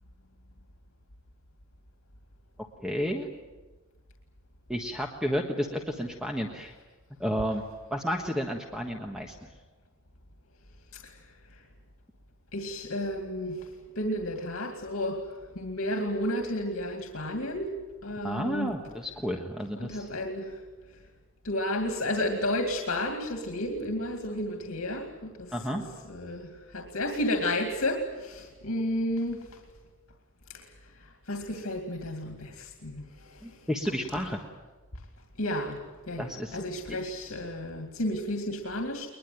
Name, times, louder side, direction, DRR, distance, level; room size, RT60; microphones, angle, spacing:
voice 1, 2.8-3.3 4.7-6.7 7.2-9.5 18.2-20.1 25.5-25.8 33.4-34.4 36.2-36.6 36.9-37.0, equal, 5° right, 2 dB, 1.4 m, -32 dB
voice 2, 12.5-13.7 14.0-15.3 15.6-17.7 18.0-18.7 19.8-20.6 21.4-25.5 26.1-29.6 30.5-30.7 31.0-33.5 35.4-35.8 36.1-36.3 36.5-39.1, left 1 dB, 85° left, 4 dB, 2.4 m, -32 dB
22.0 x 21.5 x 9.3 m, 1.3 s
head